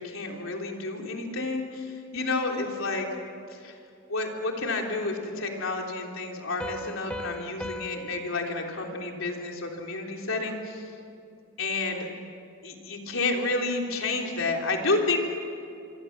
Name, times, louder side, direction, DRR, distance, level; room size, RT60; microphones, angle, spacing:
voice 1, 0.0-3.1 3.5-3.8 4.1-10.9 11.6-12.1 12.6-15.2, left 3 dB, 85° left, 1 dB, 3.5 m, -30 dB
Piano, 6.6-10.0, left 1 dB, 5° left, 0.9 m, -40 dB
25.0 x 25.0 x 7.4 m, 2.5 s
head